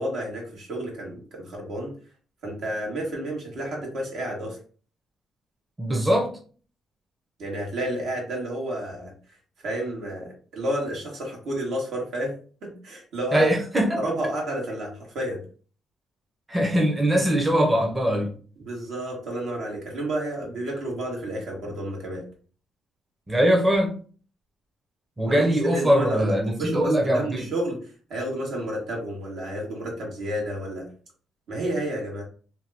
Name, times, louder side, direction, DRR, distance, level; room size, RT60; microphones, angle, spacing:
voice 1, 0.0-1.9 2.4-4.6 7.4-9.1 9.6-13.5 14.0-15.4 18.6-22.2 25.2-30.9 31.5-32.2, right 1 dB, 70° right, 1.3 m, -31 dB
voice 2, 5.8-6.4 13.3-14.0 16.5-18.3 23.3-23.9 25.2-27.5, equal, 15° right, 0.7 m, -22 dB
2.7 x 2.2 x 3.4 m
cardioid pair, 90°, 0 cm